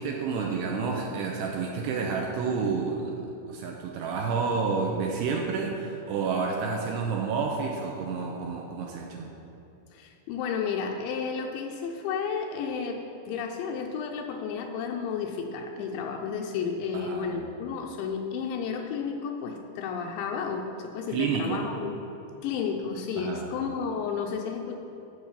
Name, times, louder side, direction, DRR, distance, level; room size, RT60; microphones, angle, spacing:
voice 1, 0.0-3.1 3.5-9.3 16.9-17.3 21.1-21.6 23.2-23.4, right 5 dB, 80° right, 0 dB, 2.6 m, -29 dB
voice 2, 9.9-21.9 22.4-24.8, left 6 dB, 80° left, 3 dB, 2.8 m, -32 dB
13.5 x 5.0 x 7.3 m, 2.9 s
omnidirectional pair, 5.4 m